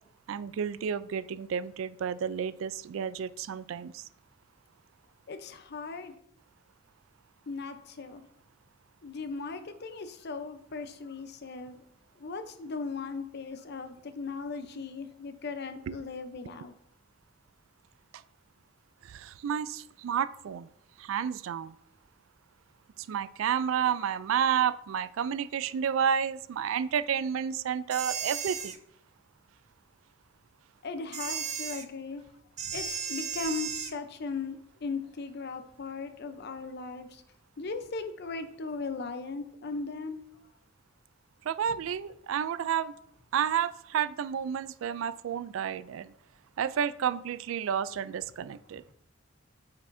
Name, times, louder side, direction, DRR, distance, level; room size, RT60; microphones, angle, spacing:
voice 1, 0.3-4.0 15.9-16.0 19.0-20.7 21.0-21.8 23.1-28.8 41.5-42.9 43.3-46.1 46.6-48.8, right 8 dB, 85° right, 16 dB, 0.3 m, -31 dB
voice 2, 5.3-6.1 7.5-8.2 9.0-11.8 12.2-16.7 30.8-32.2 32.7-37.2 37.6-40.2, left 4 dB, 55° left, 9 dB, 0.6 m, -38 dB
sound 1, 27.9-28.8 31.1-31.9 32.6-34.0, right 7 dB, 35° right, 0.5 m, -35 dB
8.3 x 5.8 x 2.6 m, 0.75 s
head